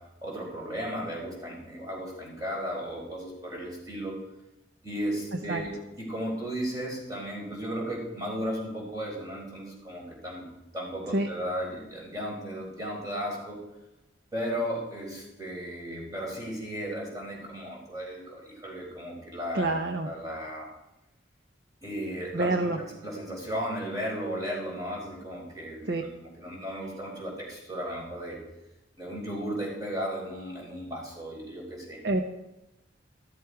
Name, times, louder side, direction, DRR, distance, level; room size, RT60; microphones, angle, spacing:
voice 1, 0.0-4.2 4.8-5.7 6.0-10.5 10.7-13.6 14.3-19.7 20.0-20.7 21.8-28.4 29.0-32.0, equal, 20° right, -3 dB, 4.2 m, -35 dB
voice 2, 19.5-20.1 22.3-22.8 25.9-26.0 32.0-32.2, right 2 dB, 55° right, 5 dB, 0.7 m, -26 dB
13.5 x 12.5 x 4.8 m, 0.94 s
head